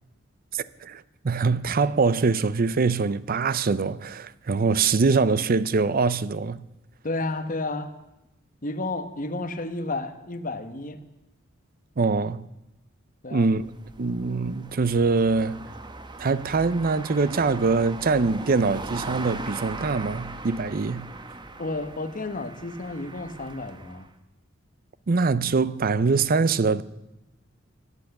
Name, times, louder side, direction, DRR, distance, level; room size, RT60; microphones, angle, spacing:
voice 1, 0.5-6.6 12.0-12.5 13.3-13.7 14.0-15.7 16.2-21.1 25.1-26.8, right 4 dB, 45° right, 0.5 m, -23 dB
voice 2, 7.0-8.0 8.6-11.0 13.2-13.5 21.6-24.1, left 2 dB, 45° left, 1.2 m, -31 dB
sound 1, 13.4-24.1, right 2 dB, 25° right, 0.9 m, -39 dB
24.0 x 8.3 x 6.6 m
head